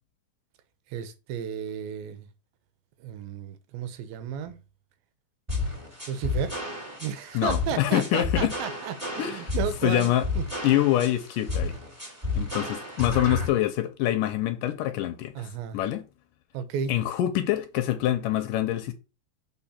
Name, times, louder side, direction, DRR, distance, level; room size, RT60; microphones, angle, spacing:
voice 1, 0.9-2.3 3.0-4.6 6.1-6.6 7.0-10.4 15.4-15.8 16.5-16.9, right 8 dB, 80° right, 2.6 m, -33 dB
sound 1, 5.5-13.5, left 3 dB, 15° right, 1.9 m, -31 dB
voice 2, 7.3-8.5 9.2-9.4 9.8-10.2 10.6-11.7 12.3-15.5 15.7-16.0 16.9-18.9, left 13 dB, 80° left, 2.1 m, -25 dB
7.5 x 4.6 x 4.2 m
omnidirectional pair, 4.2 m